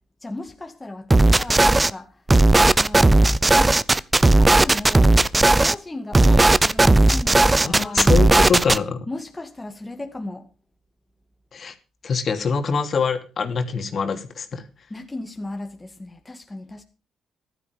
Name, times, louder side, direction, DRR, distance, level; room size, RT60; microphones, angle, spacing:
voice 1, 0.2-2.2 2.8-3.8 4.3-8.1 9.1-10.5 14.9-16.8, left 2 dB, 15° left, 2.0 m, -35 dB
sound 1, 1.1-1.9 2.3-5.7 6.1-8.8, right 2 dB, 20° right, 0.6 m, -15 dB
voice 2, 7.6-9.0 11.5-11.7 12.0-14.6, left 5 dB, 50° left, 2.7 m, -24 dB
15.0 x 12.0 x 5.2 m
cardioid pair, 90°, 0 cm